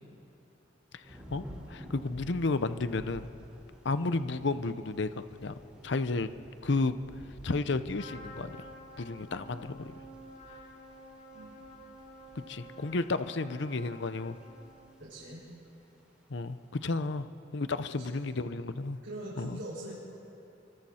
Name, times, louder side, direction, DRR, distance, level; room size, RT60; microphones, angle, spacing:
voice 1, 0.9-3.3 3.8-5.5 5.8-6.3 6.6-7.0 7.4-8.5 9.0-9.9 12.5-14.4 16.3-17.3 17.5-19.0 19.4-19.6, left 3 dB, 65° left, 12 dB, 0.7 m, -32 dB
Thunder / Rain, 1.0-16.6, equal, 5° right, 4.8 m, -52 dB
Trumpet, 7.9-14.8, equal, 50° left, 7.4 m, -50 dB
voice 2, 15.0-15.4 17.8-18.2 19.0-19.9, right 1 dB, 80° right, -7 dB, 6.0 m, -43 dB
29.0 x 24.5 x 4.3 m, 2.8 s
head